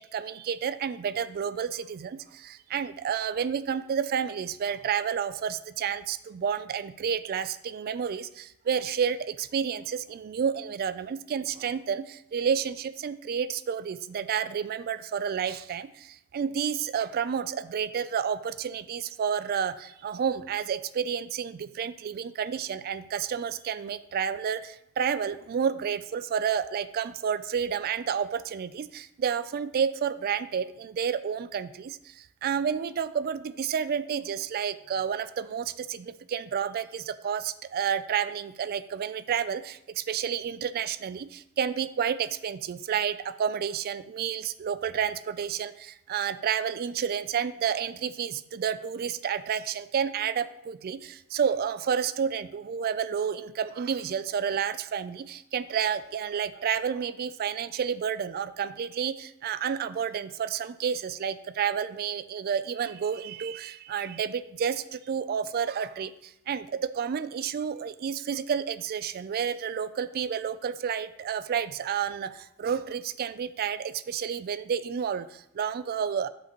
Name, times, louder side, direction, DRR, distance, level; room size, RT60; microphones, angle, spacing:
voice 1, 0.0-76.3, right 7 dB, 45° right, 14 dB, 0.3 m, -30 dB
7.7 x 5.5 x 2.9 m, 0.78 s
head